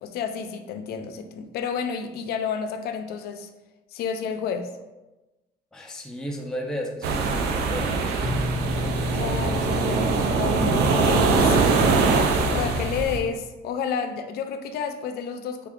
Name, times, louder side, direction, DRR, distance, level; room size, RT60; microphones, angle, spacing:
voice 1, 0.0-3.5 3.9-4.7 9.1-11.6 12.5-15.7, left 6 dB, 70° left, 7 dB, 0.4 m, -30 dB
voice 2, 5.7-8.2, equal, 5° left, 1 dB, 0.4 m, -34 dB
sound 1, 7.0-13.2, right 4 dB, 75° right, 0.5 m, -22 dB
sound 2, 8.2-13.3, left 2 dB, 40° left, 0.8 m, -33 dB
3.4 x 2.4 x 3.5 m, 1.1 s
cardioid pair, 110°, 17 cm